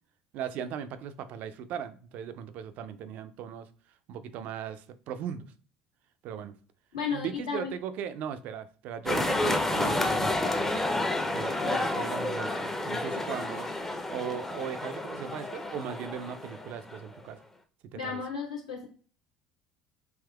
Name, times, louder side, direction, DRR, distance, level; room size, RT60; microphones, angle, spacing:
voice 1, 0.3-3.7 4.1-5.5 6.2-6.5 7.1-10.3 11.3-13.7 14.1-17.4 17.9-18.2, right 8 dB, 60° right, 0.3 m, -38 dB
voice 2, 6.9-7.7 17.9-18.9, left 6 dB, 90° left, 1.1 m, -33 dB
sound 1, 9.1-17.2, left 2 dB, 10° left, 0.5 m, -30 dB
3.5 x 2.8 x 2.3 m
hypercardioid pair, 70°, 3 cm